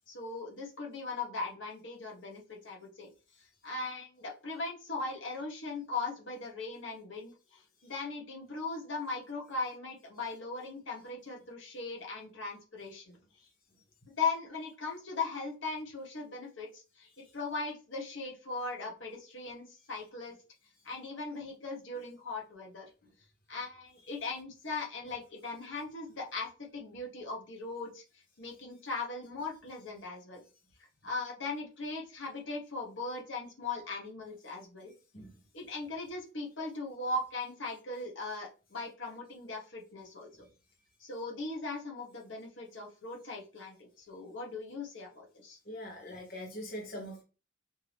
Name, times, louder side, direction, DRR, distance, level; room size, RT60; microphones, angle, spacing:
voice 1, 0.1-3.1 3.6-13.2 14.2-17.1 17.3-20.4 20.8-22.9 23.5-28.0 28.4-30.4 31.0-34.9 35.5-40.3 41.0-45.6, left 3 dB, 70° left, 0 dB, 1.3 m, -39 dB
voice 2, 45.6-47.2, equal, 45° left, -1 dB, 1.0 m, -42 dB
4.4 x 2.8 x 3.4 m, 0.33 s
head